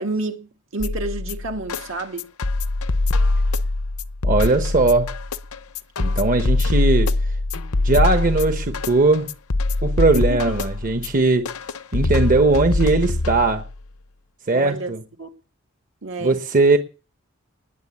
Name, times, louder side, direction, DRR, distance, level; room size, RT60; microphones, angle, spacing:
voice 1, 0.0-2.3 10.1-10.4 14.5-14.9 15.2-15.3 16.0-16.4, right 2 dB, 65° right, 2.3 m, -29 dB
sound 1, 0.8-13.8, left 2 dB, 90° left, 0.8 m, -23 dB
voice 2, 4.2-5.2 6.0-7.2 7.8-9.3 9.8-11.5 11.9-13.6 14.5-15.0 16.2-16.8, right 3 dB, 40° right, 1.1 m, -19 dB
20.0 x 7.4 x 8.5 m
head